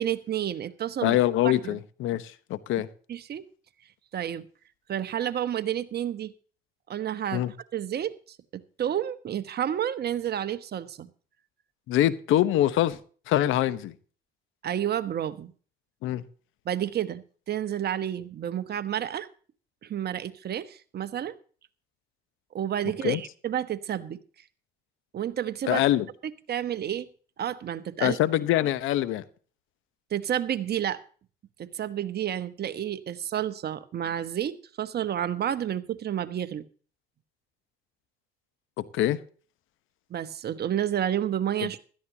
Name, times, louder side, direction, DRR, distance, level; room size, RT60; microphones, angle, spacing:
voice 1, 0.0-1.2 1.4-1.8 3.1-3.4 4.1-4.5 4.9-6.3 6.9-7.4 7.7-11.1 14.6-15.5 16.6-19.3 19.8-21.3 22.5-24.2 25.1-25.8 26.5-27.1 27.4-28.2 30.1-31.0 31.6-36.6 40.1-41.8, right 10 dB, 50° right, 1.1 m, -30 dB
voice 2, 1.0-2.9 7.3-7.5 11.9-13.0 13.3-13.9 16.0-16.2 23.0-23.2 25.7-26.1 28.0-29.2 38.8-39.2, left 13 dB, 75° left, 1.0 m, -24 dB
16.5 x 12.5 x 2.8 m
supercardioid pair, 80°, 21 cm